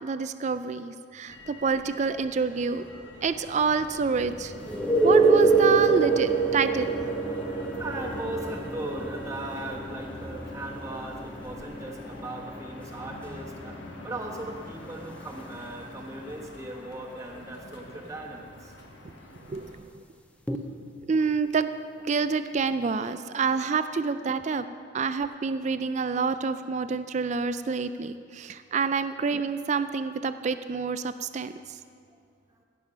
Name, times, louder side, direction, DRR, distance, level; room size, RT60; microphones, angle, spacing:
voice 1, 0.0-2.8 3.2-4.5 5.0-7.0 19.5-20.0 21.1-21.7 22.0-24.6 24.9-31.5, right 5 dB, 40° right, 11 dB, 0.4 m, -27 dB
Motor vehicle (road), 1.3-19.8, left 1 dB, 75° left, 1.3 m, -45 dB
sound 1, 4.7-16.2 20.5-20.6, right 4 dB, 5° left, 0.6 m, -27 dB
voice 2, 7.2-18.9 20.5-20.6, right 2 dB, 15° right, -1 dB, 1.1 m, -38 dB
16.0 x 7.0 x 5.1 m, 2.2 s
head